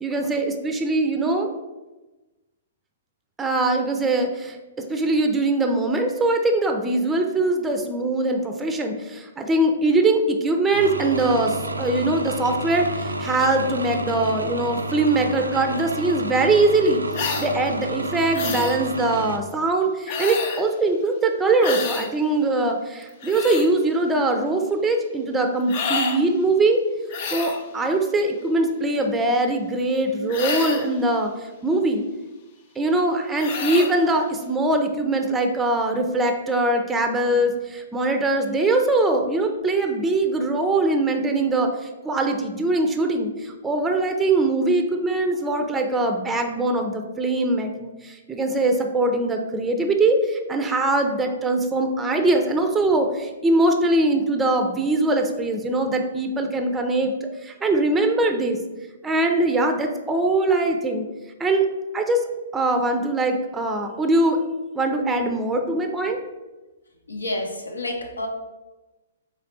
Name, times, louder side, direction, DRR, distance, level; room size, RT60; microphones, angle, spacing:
voice 1, 0.0-1.5 3.4-26.8 27.3-32.0 32.8-58.6 59.0-61.0 61.4-61.6 61.9-62.2 62.5-64.4 64.7-66.2, right 2 dB, 10° right, 5 dB, 0.5 m, -22 dB
sound 1, 10.7-19.4, right 1 dB, 85° right, 0.3 m, -30 dB
sound 2, 17.1-17.5 18.3-18.8 20.1-20.7 21.6-22.1 23.0-23.7 25.7-26.2 27.1-27.6 30.3-30.9 33.4-33.9, left 5 dB, 45° left, 0.6 m, -28 dB
voice 2, 67.1-68.3, left 1 dB, 80° left, 3 dB, 0.8 m, -29 dB
4.1 x 3.1 x 4.1 m, 1.1 s
figure-of-eight pair, 120°, 0 cm